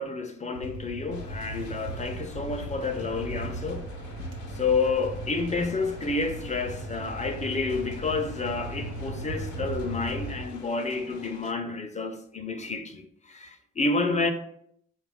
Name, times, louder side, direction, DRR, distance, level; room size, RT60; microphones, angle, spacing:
voice 1, 0.0-3.9 4.5-14.3, left 3 dB, 25° left, 0.4 m, -29 dB
sound 1, 0.5-10.4, right 1 dB, 85° right, 1.1 m, -37 dB
sound 2, 1.1-11.5, left 5 dB, 75° left, 0.6 m, -49 dB
4.5 x 2.4 x 3.4 m
cardioid pair, 90°, 30 cm